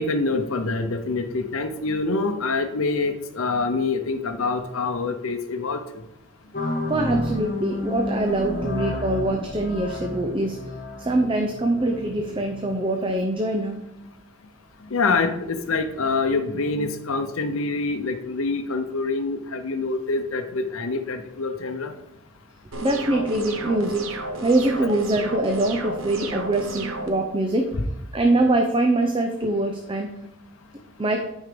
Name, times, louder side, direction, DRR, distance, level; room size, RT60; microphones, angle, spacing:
voice 1, 0.0-5.8 14.9-21.9, left 3 dB, 85° left, 6 dB, 0.7 m, -25 dB
sound 1, 6.5-12.8, left 1 dB, 40° left, 1.4 m, -31 dB
voice 2, 6.9-10.6 11.0-13.9 22.8-24.1 24.4-27.7 28.1-30.1 31.0-31.3, right 2 dB, 25° right, 3 dB, 0.6 m, -23 dB
sound 2, 22.7-27.1, right 2 dB, 80° right, 1.1 m, -33 dB
9.2 x 4.6 x 5.1 m, 0.87 s
head